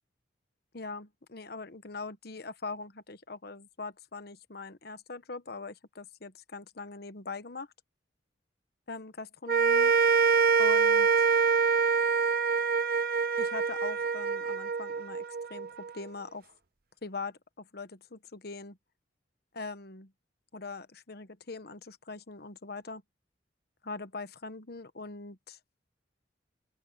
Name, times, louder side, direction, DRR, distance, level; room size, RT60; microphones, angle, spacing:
voice 1, 0.7-7.7 8.9-9.9 10.6-11.1 13.4-15.2 15.5-16.5 17.0-18.8 19.5-20.1 20.5-23.0 23.8-25.6, left 3 dB, 55° left, 1.1 m, -42 dB
sound 1, 9.5-15.9, right 5 dB, 55° right, 0.9 m, -25 dB
open air
head